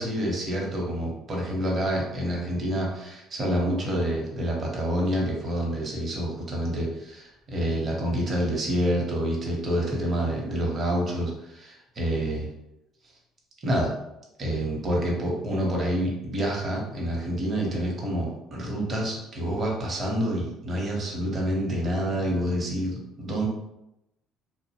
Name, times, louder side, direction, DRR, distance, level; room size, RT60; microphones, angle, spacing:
voice 1, 0.0-12.5 13.6-13.9 14.4-23.5, equal, 45° right, -2 dB, 0.8 m, -28 dB
2.5 x 2.0 x 2.8 m, 0.87 s
supercardioid pair, 85°, 0 cm